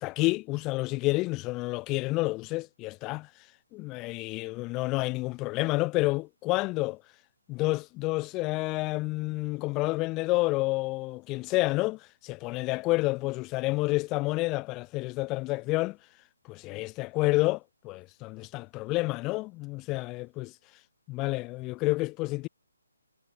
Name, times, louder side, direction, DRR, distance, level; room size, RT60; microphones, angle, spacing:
voice 1, 0.0-3.3 3.7-7.0 7.5-16.0 16.5-20.5 21.1-22.5, left 22 dB, 20° left, 0.7 m, -29 dB
figure-of-eight pair, 150°, 0 cm